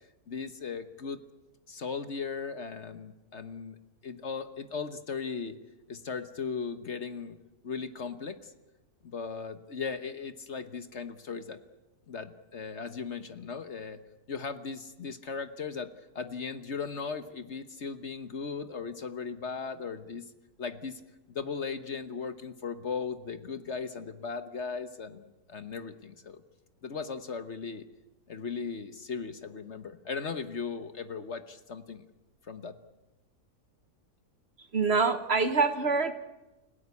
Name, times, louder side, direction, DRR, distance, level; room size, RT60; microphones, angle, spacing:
voice 1, 0.3-1.2 1.7-3.8 4.0-5.6 5.9-7.4 7.6-8.5 9.0-11.6 12.1-14.0 14.3-15.9 16.1-20.2 20.6-21.0 21.3-26.4 26.8-27.8 28.3-32.0 32.5-32.7, left 5 dB, 50° left, 11 dB, 1.3 m, -37 dB
voice 2, 34.7-36.1, right 4 dB, 45° right, 10 dB, 1.4 m, -25 dB
30.0 x 16.5 x 8.4 m, 1.0 s
omnidirectional pair, 1.6 m